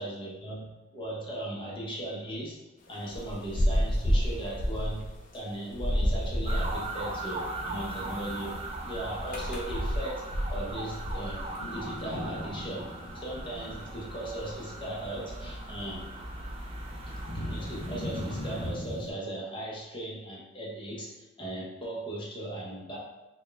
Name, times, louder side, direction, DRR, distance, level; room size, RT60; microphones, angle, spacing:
voice 1, 0.0-2.6 2.9-8.6 8.8-10.2 10.5-12.9 13.1-16.0 17.0-23.0, right 1 dB, 25° left, -4 dB, 0.9 m, -38 dB
sound 1, 2.9-6.9 7.7-7.9 8.4-19.1, equal, 45° left, 0.6 m, -32 dB
sound 2, 6.5-18.7, right 2 dB, 30° right, 0.4 m, -39 dB
4.2 x 2.3 x 3.3 m, 1.1 s
head